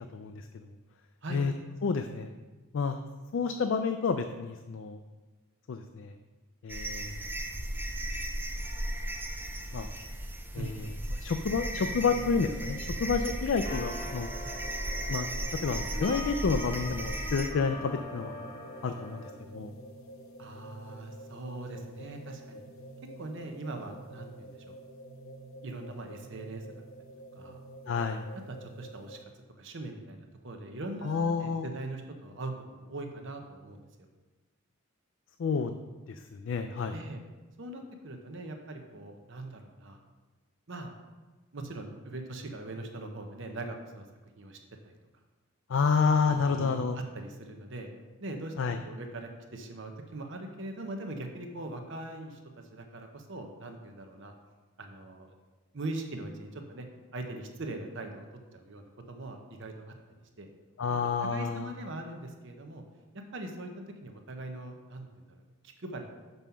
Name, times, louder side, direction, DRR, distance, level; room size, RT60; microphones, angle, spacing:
voice 1, 0.1-0.7 1.3-1.5 1.8-2.3 2.7-3.0 3.3-5.0 5.7-6.2 6.6-7.3 9.7-9.9 10.5-14.3 15.1-18.3 18.8-19.7 27.9-28.3 31.0-31.8 35.4-35.7 36.1-37.0 45.7-47.0 48.6-48.8 60.8-61.7, left 5 dB, 60° left, 7 dB, 0.4 m, -30 dB
sound 1, 6.7-17.5, right 1 dB, 10° right, 0.4 m, -36 dB
sound 2, 8.6-10.7 13.4-19.3, left 1 dB, 25° left, 1.5 m, -44 dB
sound 3, 11.7-29.2, right 1 dB, 75° left, 0.8 m, -48 dB
voice 2, 20.4-22.6 23.2-24.8 25.6-26.7 27.4-27.6 28.5-29.3 29.6-34.1 36.9-37.2 37.6-40.0 40.7-40.9 41.5-44.0 44.4-44.6 44.8-44.9 46.3-47.9 48.2-52.4 52.7-54.3 54.8-55.3 55.7-56.9 57.1-58.2 58.5-59.9 60.4-60.5 60.9-62.8 63.1-65.4 65.8-66.1, right 2 dB, 60° right, 4 dB, 0.8 m, -41 dB
6.1 x 5.5 x 5.6 m, 1.3 s
head